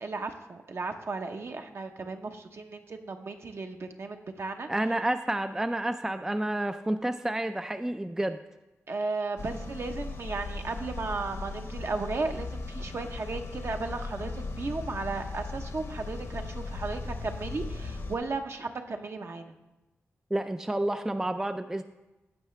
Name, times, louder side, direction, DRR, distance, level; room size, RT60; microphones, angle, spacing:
voice 1, 0.0-4.7 8.9-19.5, right 3 dB, 55° right, 5 dB, 0.8 m, -35 dB
voice 2, 4.7-8.4 20.3-21.8, right 1 dB, 10° right, 8 dB, 0.3 m, -30 dB
sound 1, 9.4-18.2, left 3 dB, 70° left, 1.1 m, -38 dB
16.0 x 5.7 x 3.2 m, 1.1 s
wide cardioid pair, 85°, 5 cm